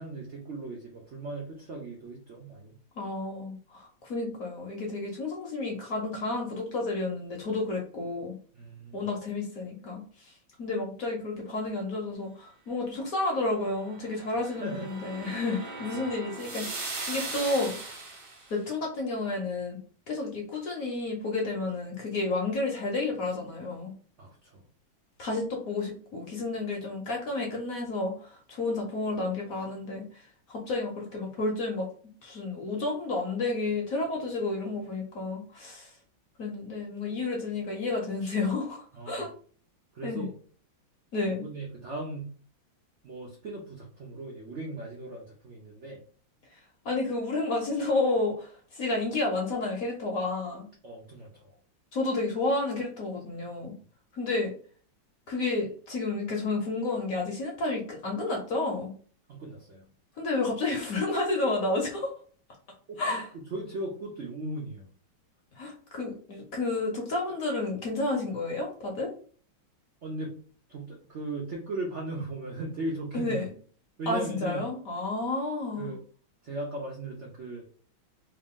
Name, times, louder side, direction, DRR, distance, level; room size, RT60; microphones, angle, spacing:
voice 1, 0.0-2.8 8.5-9.1 14.4-14.9 15.9-16.1 24.2-24.6 38.9-39.2 39.9-40.3 41.2-42.3 43.0-46.0 50.8-51.5 59.3-59.9 62.9-63.2 63.5-64.9 70.0-70.4 70.7-73.4 74.0-74.6 75.8-76.0 76.4-77.6, right 2 dB, 75° right, -1 dB, 0.6 m, -38 dB
voice 2, 3.0-8.3 8.9-10.3 10.6-17.8 18.5-19.8 20.1-23.9 25.2-30.2 30.5-31.9 32.2-35.9 36.4-39.3 40.0-40.3 41.1-41.4 46.8-50.7 51.9-53.7 54.1-54.5 55.3-58.9 60.2-62.1 63.0-63.3 65.6-69.1 73.1-73.5 74.1-75.9, left 2 dB, 55° left, 0 dB, 1.0 m, -31 dB
sound 1, 13.9-18.5, right 3 dB, 50° right, 1.3 m, -38 dB
3.3 x 2.5 x 3.6 m, 0.43 s
omnidirectional pair, 2.2 m